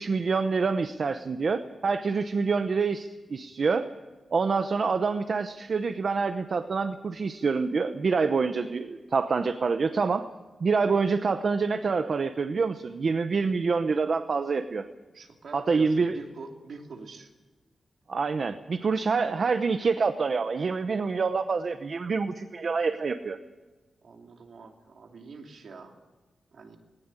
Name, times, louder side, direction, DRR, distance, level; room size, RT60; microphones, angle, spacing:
voice 1, 0.0-3.9 4.3-10.3 10.6-14.8 15.5-16.1 18.1-23.4, right 4 dB, 45° right, 9 dB, 0.8 m, -26 dB
voice 2, 15.1-17.3 19.2-19.4 24.0-25.9 26.5-26.8, right 4 dB, 60° right, 3 dB, 2.9 m, -45 dB
19.5 x 18.0 x 9.0 m, 1.2 s
wide cardioid pair, 180°, 0 cm